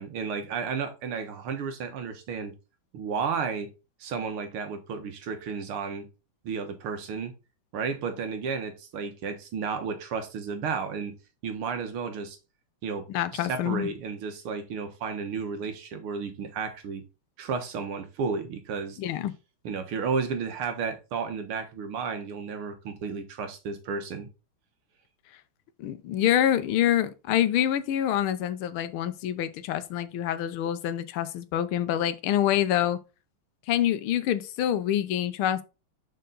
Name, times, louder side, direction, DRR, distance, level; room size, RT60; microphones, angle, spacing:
voice 1, 0.0-2.5 2.9-3.7 4.0-6.1 6.4-7.3 7.7-11.1 11.4-12.4 12.8-17.0 17.4-19.0 19.6-24.3, right 5 dB, 85° right, 2.1 m, -32 dB
voice 2, 13.1-13.9 19.0-19.3 25.8-33.0 33.7-35.6, left 11 dB, 80° left, 1.6 m, -26 dB
6.8 x 5.2 x 3.8 m
omnidirectional pair, 2.3 m